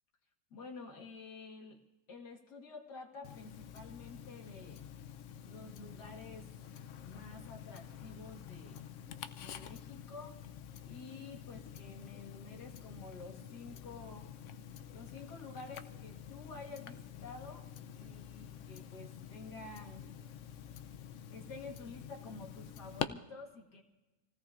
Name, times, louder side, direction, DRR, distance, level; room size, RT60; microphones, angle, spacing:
voice 1, 0.5-1.8 2.1-4.8 5.4-6.6 7.0-8.8 9.4-10.4 10.8-14.3 14.9-17.7 17.9-20.1 21.3-23.8, left 3 dB, 60° left, 2 dB, 2.3 m, -50 dB
Tick-tock, 3.2-23.0, left 9 dB, 80° left, 0.6 m, -48 dB
28.0 x 17.0 x 2.5 m, 1.1 s
omnidirectional pair, 2.1 m